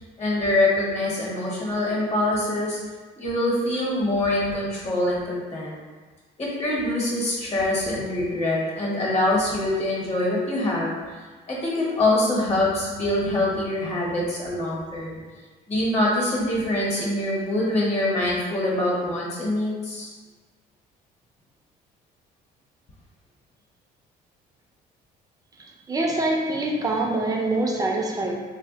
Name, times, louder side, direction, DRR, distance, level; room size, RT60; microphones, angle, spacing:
voice 1, 0.2-2.8 3.2-5.7 6.4-10.9 11.5-15.2 15.7-20.1, left 1 dB, 40° left, -4 dB, 0.9 m, -24 dB
voice 2, 25.6-28.4, right 2 dB, 20° right, 0 dB, 0.4 m, -25 dB
2.2 x 2.1 x 3.8 m, 1.4 s
cardioid pair, 110°, 17 cm